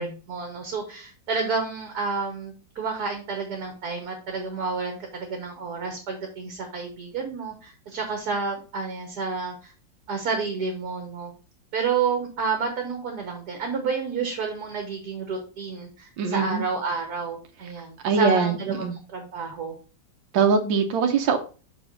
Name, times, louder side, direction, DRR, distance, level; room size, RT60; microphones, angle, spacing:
voice 1, 0.0-9.7 10.1-11.3 11.7-19.7, right 5 dB, 60° right, 2 dB, 1.6 m, -30 dB
voice 2, 16.2-16.6 18.0-18.9 20.3-21.4, right 5 dB, 75° right, 4 dB, 1.6 m, -22 dB
6.2 x 4.9 x 3.8 m, 0.35 s
omnidirectional pair, 2.1 m